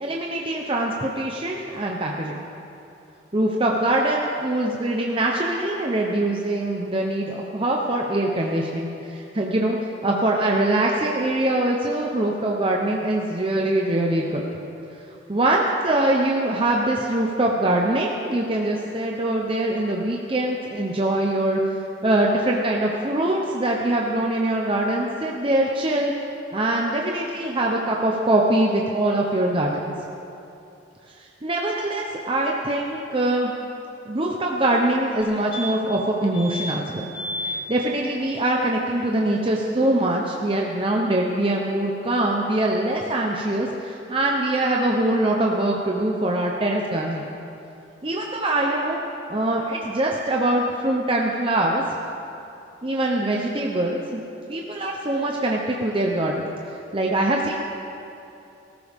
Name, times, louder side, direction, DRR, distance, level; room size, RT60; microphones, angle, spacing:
voice 1, 0.0-2.3 3.3-14.4 15.3-21.6 22.0-26.1 26.5-30.0 31.4-33.5 34.1-37.0 37.4-47.3 48.0-49.0 49.3-51.8 52.8-54.2 54.5-57.5, right 1 dB, 30° right, -1 dB, 0.8 m, -23 dB
sound 1, 35.2-35.3 35.5-36.0 36.3-36.7 37.1-37.6 40.0-40.1 40.2-40.3, left 1 dB, 60° left, 2.4 m, -31 dB
19.0 x 14.0 x 3.6 m, 2.8 s
head